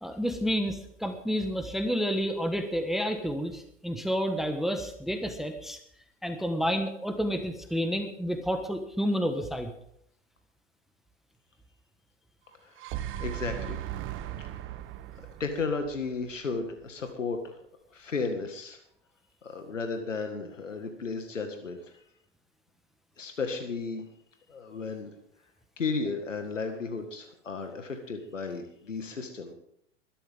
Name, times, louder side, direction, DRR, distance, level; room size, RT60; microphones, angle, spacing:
voice 1, 0.0-5.8 6.2-9.7, equal, ahead, 6 dB, 1.4 m, -30 dB
sound 1, 12.5-16.7, right 12 dB, 35° right, 1.1 m, -38 dB
voice 2, 12.6-13.8 15.4-17.6 17.9-18.8 19.4-22.0 23.2-24.0 24.5-25.2 25.8-29.5, left 4 dB, 90° left, 5 dB, 2.0 m, -34 dB
21.0 x 12.5 x 3.7 m, 0.71 s
hypercardioid pair, 105°, 37 cm